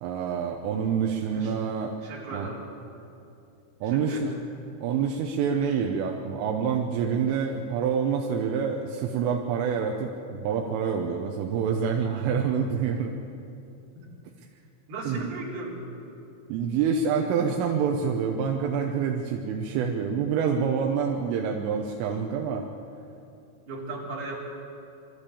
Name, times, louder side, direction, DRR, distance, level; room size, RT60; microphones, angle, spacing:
voice 1, 0.0-1.9 2.3-2.5 3.8-4.3 4.8-13.2 15.1-15.3 16.5-22.7, right 6 dB, 85° right, 2 dB, 3.6 m, -27 dB
voice 2, 1.2-1.5 2.0-2.6 3.8-4.3 14.0-14.1 14.9-15.9 23.7-24.4, right 2 dB, 55° right, -5 dB, 5.7 m, -36 dB
24.5 x 14.0 x 8.5 m, 2.7 s
omnidirectional pair, 5.7 m